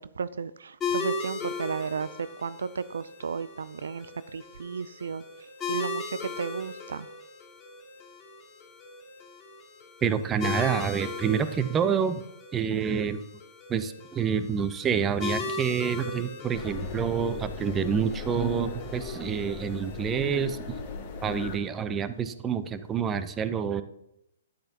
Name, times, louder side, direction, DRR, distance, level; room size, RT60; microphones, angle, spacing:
voice 1, 0.2-7.1, right 5 dB, 70° right, 16 dB, 0.4 m, -34 dB
sound 1, 0.8-20.0, left 4 dB, 15° left, 2.1 m, -38 dB
voice 2, 10.0-12.2 12.5-13.2 13.7-20.6 21.2-23.8, right 7 dB, 20° right, 12 dB, 0.7 m, -28 dB
sound 2, 16.5-21.6, left 5 dB, 35° left, 3.1 m, -38 dB
12.0 x 10.5 x 2.9 m, 0.81 s
figure-of-eight pair, 125°, 0 cm